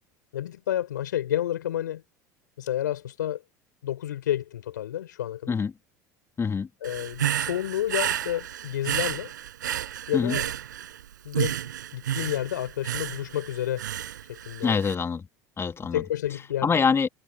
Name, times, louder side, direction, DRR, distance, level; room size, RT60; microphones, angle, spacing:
voice 1, 0.3-2.0 2.6-3.4 3.8-5.5 6.8-9.3 10.1-10.5 11.2-11.6 11.9-13.9 14.3-14.8 15.9-16.7, left 12 dB, 80° left, 4.4 m, -30 dB
voice 2, 6.4-6.7 10.1-10.4 14.6-15.3 15.6-16.0 16.6-17.1, left 5 dB, 25° left, 2.4 m, -25 dB
Human voice / Breathing, 6.8-11.0 11.3-14.9, right 11 dB, 80° right, 5.6 m, -31 dB
hypercardioid pair, 75°, 10 cm